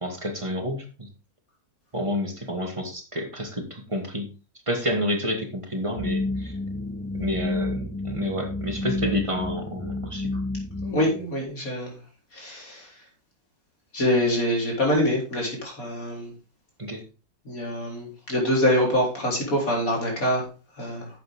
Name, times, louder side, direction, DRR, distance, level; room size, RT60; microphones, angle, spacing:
voice 1, 0.0-1.1 1.9-4.3 4.7-6.5 7.2-10.3 16.8-17.0, equal, 20° right, 3 dB, 2.0 m, -29 dB
sound 1, 6.0-11.0, left 2 dB, 10° left, 0.5 m, -30 dB
voice 2, 10.8-11.9 12.3-12.9 13.9-16.3 17.5-20.4 20.8-21.1, left 1 dB, 60° left, -2 dB, 4.4 m, -25 dB
11.0 x 7.9 x 3.6 m, 0.34 s
omnidirectional pair, 1.6 m